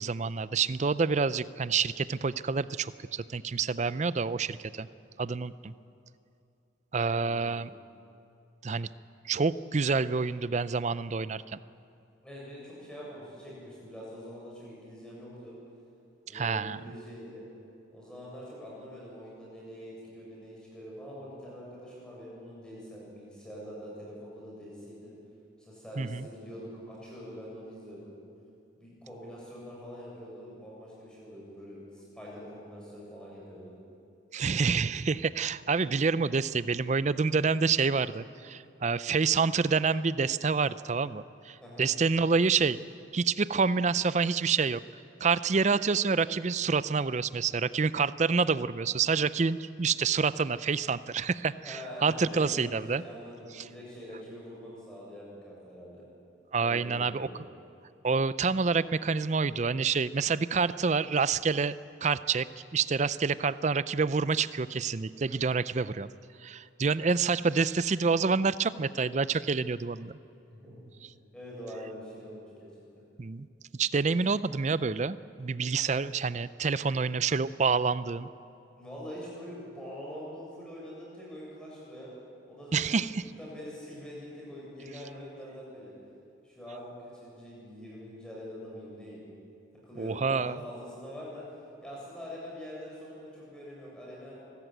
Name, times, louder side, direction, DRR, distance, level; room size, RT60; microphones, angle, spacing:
voice 1, 0.0-4.9 5.2-5.7 6.9-7.7 8.6-8.9 9.2-11.6 16.3-16.8 26.0-26.3 34.3-42.8 43.1-44.8 45.2-53.0 56.5-57.3 58.0-61.8 62.0-62.5 62.7-66.1 66.4-70.1 73.2-73.5 73.8-78.3 82.7-83.2 90.0-90.6, right 5 dB, 35° right, 16 dB, 0.4 m, -27 dB
voice 2, 6.9-7.7 12.2-15.5 16.2-17.4 17.9-25.1 25.6-28.1 28.8-33.7 41.6-41.9 51.6-56.0 56.6-57.4 70.5-70.9 71.2-72.7 78.8-82.1 82.5-85.9 86.4-89.3 89.9-91.4 91.8-94.4, equal, 5° left, -6 dB, 7.2 m, -44 dB
25.0 x 14.5 x 9.1 m, 2.6 s
head